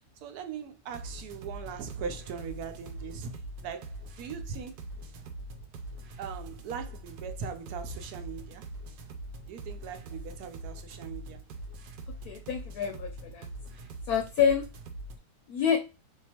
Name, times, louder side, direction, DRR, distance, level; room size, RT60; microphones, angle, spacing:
voice 1, 0.2-4.8 6.2-8.7 9.5-11.4, right 6 dB, 70° right, 1.0 m, -40 dB
sound 1, 0.9-15.2, right 2 dB, 85° right, 1.3 m, -43 dB
voice 2, 12.1-13.5 14.1-14.6 15.5-15.8, left 7 dB, 70° left, 1.0 m, -27 dB
3.6 x 2.8 x 2.9 m
omnidirectional pair, 1.9 m